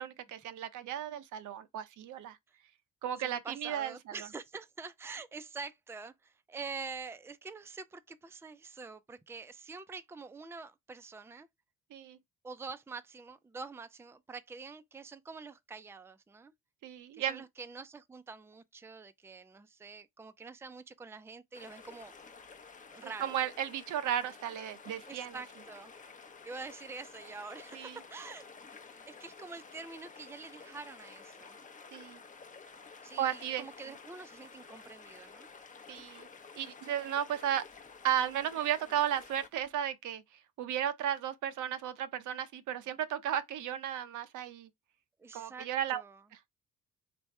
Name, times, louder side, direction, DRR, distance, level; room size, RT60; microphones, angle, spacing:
voice 1, 0.0-2.4 3.0-4.2 11.9-12.2 16.8-17.4 23.0-25.4 27.7-28.0 31.9-32.2 33.2-33.6 35.9-36.3 36.6-37.6 38.0-40.2 40.6-44.7 45.3-46.0 46.3-46.4, right 10 dB, 75° right, 0.7 m, -34 dB
voice 2, 3.2-11.5 12.4-16.5 17.1-22.2 22.9-23.4 25.1-25.9 26.4-28.5 28.8-31.6 33.0-35.5 45.2-46.2, right 4 dB, 10° right, 0.5 m, -46 dB
sound 1, 21.5-39.7, left 5 dB, 25° left, 0.7 m, -52 dB
3.5 x 3.3 x 4.2 m
cardioid pair, 90°, 30 cm